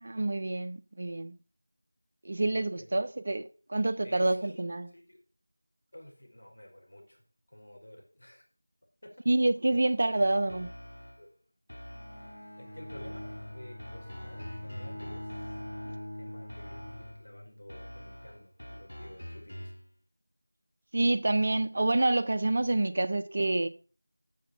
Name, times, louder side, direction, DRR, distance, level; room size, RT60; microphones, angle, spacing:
voice 1, 0.0-1.4 2.2-4.9 9.3-10.7 20.9-23.7, right 2 dB, 35° right, 0.5 m, -27 dB
voice 2, 2.4-2.9 4.0-5.2 5.9-8.4 9.0-9.2 10.2-10.4 11.2-11.3 12.3-15.6 15.9-19.8, left 1 dB, 60° left, 5.2 m, -52 dB
sound 1, 10.5-11.3 11.7-12.5 12.9-16.1 16.5-17.3 17.7-19.9, equal, 80° left, 1.7 m, -46 dB
Bowed string instrument, 11.9-17.7, left 1 dB, 20° left, 4.9 m, -43 dB
14.0 x 6.9 x 5.4 m
figure-of-eight pair, 175°, 0 cm